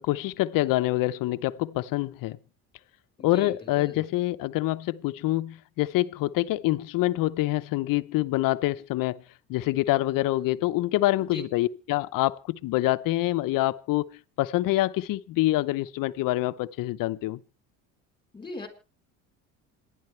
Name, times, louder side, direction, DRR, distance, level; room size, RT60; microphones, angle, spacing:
voice 1, 0.0-2.4 3.2-9.2 9.5-17.4, left 17 dB, 65° left, 0.9 m, -26 dB
voice 2, 3.2-4.1 11.3-11.4 18.3-18.7, left 3 dB, 15° left, 4.0 m, -40 dB
27.0 x 11.0 x 3.3 m
supercardioid pair, 100°, 36 cm